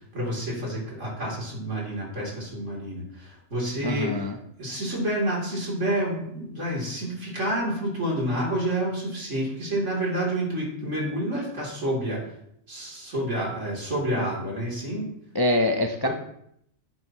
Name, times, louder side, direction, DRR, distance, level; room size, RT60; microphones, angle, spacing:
voice 1, 0.1-4.3 4.6-12.3 12.7-15.1, right 1 dB, 70° right, -4 dB, 3.6 m, -29 dB
voice 2, 3.8-4.4 15.3-16.1, left 1 dB, 25° left, 3 dB, 0.5 m, -24 dB
11.0 x 7.9 x 3.0 m, 0.72 s
omnidirectional pair, 1.3 m